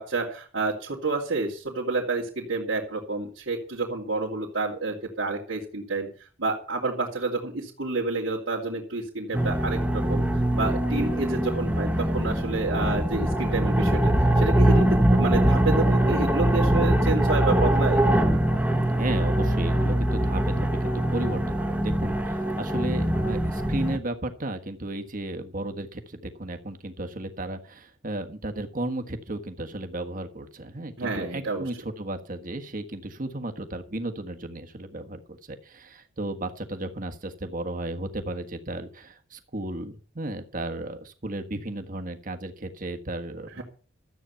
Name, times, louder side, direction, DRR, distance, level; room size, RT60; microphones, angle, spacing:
voice 1, 0.0-6.1 6.4-14.1 14.4-18.0 31.0-31.6 43.6-43.7, right 3 dB, 90° right, -5 dB, 2.6 m, -29 dB
sound 1, 9.3-24.0, right 1 dB, 10° right, 1.1 m, -23 dB
voice 2, 19.0-43.6, right 1 dB, 45° right, 7 dB, 1.5 m, -34 dB
13.5 x 8.5 x 5.8 m, 0.40 s
head